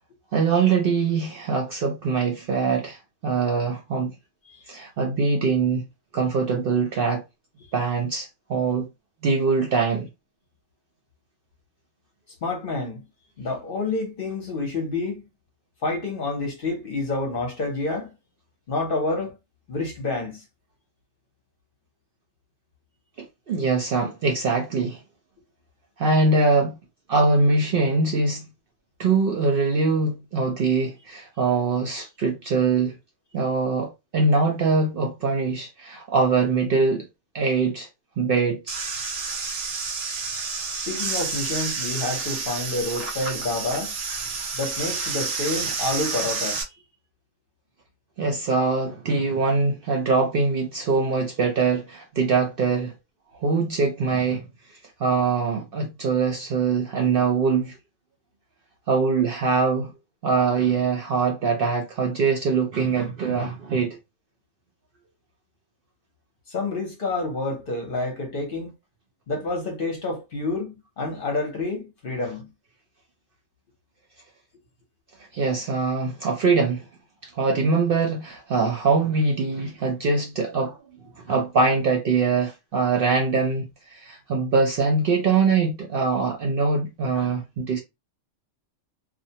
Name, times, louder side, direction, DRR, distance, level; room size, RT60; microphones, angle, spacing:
voice 1, 0.3-4.1 4.7-5.8 6.1-7.2 7.7-8.9 9.2-10.1 23.2-25.0 26.0-26.8 27.1-28.4 29.0-32.9 33.3-37.1 37.3-37.9 38.2-38.8 48.2-52.9 53.3-54.5 55.0-57.8 58.9-59.9 60.2-64.0 75.3-76.9 77.2-80.8 81.2-87.8, right 4 dB, 60° right, 0.6 m, -23 dB
voice 2, 12.4-13.0 13.4-15.2 15.8-18.1 18.7-19.4 19.7-20.4 40.9-44.0 44.5-46.6 66.5-68.7 69.3-72.5, left 2 dB, 50° left, 0.8 m, -28 dB
sound 1, 38.7-46.6, right 4 dB, 80° right, 1.2 m, -29 dB
2.5 x 2.1 x 2.7 m
omnidirectional pair, 1.3 m